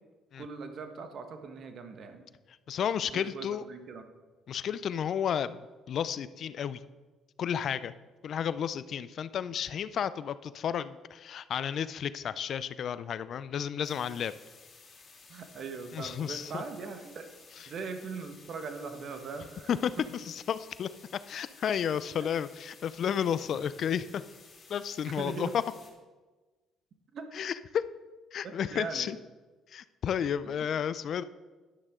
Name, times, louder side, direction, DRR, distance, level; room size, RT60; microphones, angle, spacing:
voice 1, 0.4-2.3 3.0-4.0 15.3-17.2 17.7-19.7 23.5-23.6 25.1-25.5 27.1-27.3 28.4-29.1 30.4-30.7, right 4 dB, 60° right, 7 dB, 1.3 m, -40 dB
voice 2, 2.7-3.6 4.5-6.8 7.4-7.9 8.2-14.3 15.9-16.6 19.7-20.9 21.3-24.2 24.7-25.5 27.3-27.9 28.3-29.2 29.7-31.2, left 8 dB, 60° left, 15 dB, 0.4 m, -32 dB
sound 1, 13.8-25.9, left 4 dB, 45° left, 3.0 m, -55 dB
11.0 x 9.9 x 3.7 m, 1.3 s
supercardioid pair, 70°, 0 cm